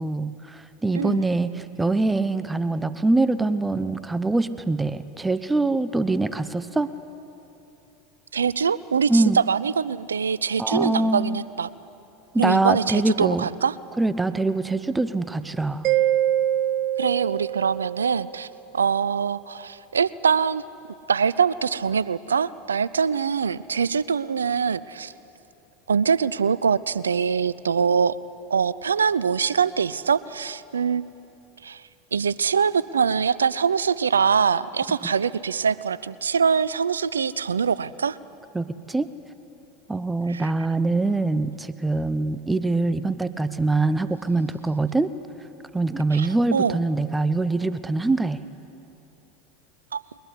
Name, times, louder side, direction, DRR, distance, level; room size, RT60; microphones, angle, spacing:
voice 1, 0.0-6.9 9.1-9.4 10.6-11.4 12.3-13.4 14.0-15.9 38.5-39.1 39.9-45.1 45.7-48.4, right 2 dB, 10° right, 14 dB, 0.9 m, -24 dB
voice 2, 8.3-11.7 12.4-13.8 17.0-18.5 18.7-20.6 21.1-25.1 25.9-28.2 28.5-31.3 31.6-31.8 32.1-38.2 40.3-40.5 46.1-46.8 49.9-50.0, right 6 dB, 85° right, 19 dB, 0.6 m, -23 dB
Mallet percussion, 15.8-18.4, right 12 dB, 50° right, 0.8 m, -24 dB
22.0 x 21.0 x 9.8 m, 2.9 s
hypercardioid pair, 85°, 0 cm